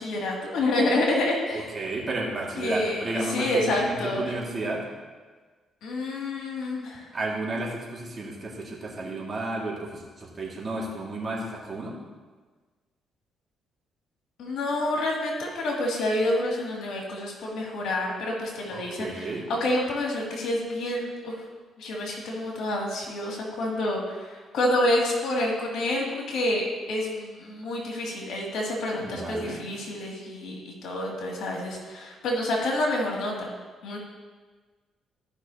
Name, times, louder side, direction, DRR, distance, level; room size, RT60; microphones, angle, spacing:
voice 1, 0.0-1.7 2.6-3.0 3.3-4.3 5.8-7.1 14.4-21.3 21.8-33.5 33.8-34.0, left 1 dB, 80° left, -2 dB, 2.5 m, -28 dB
voice 2, 1.5-4.9 7.1-12.0 18.7-19.4 29.0-29.6, right 2 dB, 40° right, -3 dB, 2.1 m, -32 dB
15.0 x 5.9 x 2.9 m, 1.4 s
cardioid pair, 90°, 0 cm